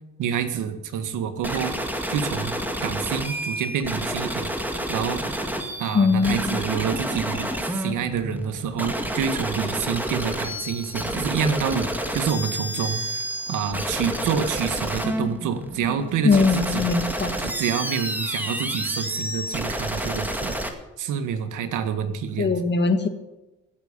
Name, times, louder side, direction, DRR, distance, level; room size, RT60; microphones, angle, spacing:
voice 1, 0.2-1.7 2.1-2.6 2.8-4.5 4.9-5.2 5.8-16.9 17.4-20.6 21.0-22.5, right 7 dB, 85° right, 9 dB, 1.6 m, -27 dB
sound 1, 1.4-20.7, equal, 5° right, 2.1 m, -29 dB
voice 2, 5.9-6.6 16.2-17.3 22.4-23.1, left 4 dB, 35° left, 8 dB, 1.8 m, -20 dB
16.0 x 8.8 x 6.8 m, 1.0 s
cardioid pair, 90°, 30 cm